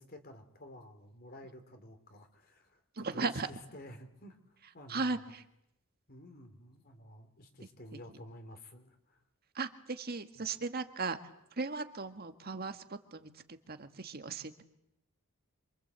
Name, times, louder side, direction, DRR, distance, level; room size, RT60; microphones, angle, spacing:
voice 1, 0.0-5.2 6.1-9.2 10.3-10.5, left 1 dB, 45° left, 7 dB, 3.1 m, -52 dB
voice 2, 3.0-3.5 4.9-5.4 9.6-11.2 11.6-13.3 13.7-14.6, right 4 dB, 45° right, 8 dB, 1.7 m, -37 dB
27.0 x 24.5 x 8.2 m, 0.82 s
head